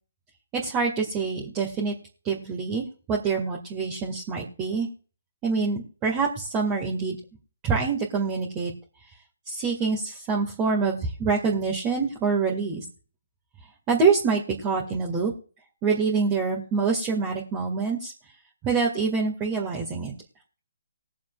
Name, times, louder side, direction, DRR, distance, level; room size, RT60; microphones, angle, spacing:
voice 1, 0.5-1.9 2.2-4.9 5.4-7.2 7.6-8.7 9.5-12.8 13.9-15.3 15.8-18.1 18.6-20.1, right 4 dB, 20° right, -2 dB, 2.0 m, -26 dB
21.0 x 7.3 x 2.5 m, 0.39 s
figure-of-eight pair, 145°, 0 cm